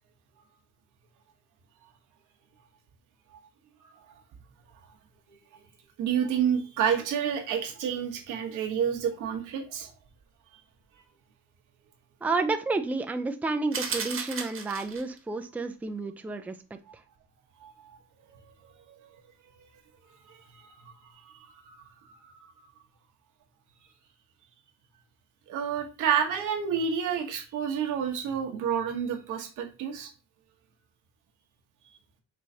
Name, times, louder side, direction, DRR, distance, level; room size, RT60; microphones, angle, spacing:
voice 1, 6.0-9.9 17.6-18.0 18.3-19.2 20.3-21.7 22.1-22.2 25.5-30.1, right 8 dB, 90° right, 2 dB, 1.1 m, -30 dB
voice 2, 12.2-16.6 16.9-17.0, right 3 dB, 5° right, 7 dB, 0.4 m, -30 dB
sound 1, 13.7-15.2, right 5 dB, 45° right, 1.1 m, -34 dB
4.5 x 3.1 x 2.7 m, 0.33 s
cardioid pair, 90°, 30 cm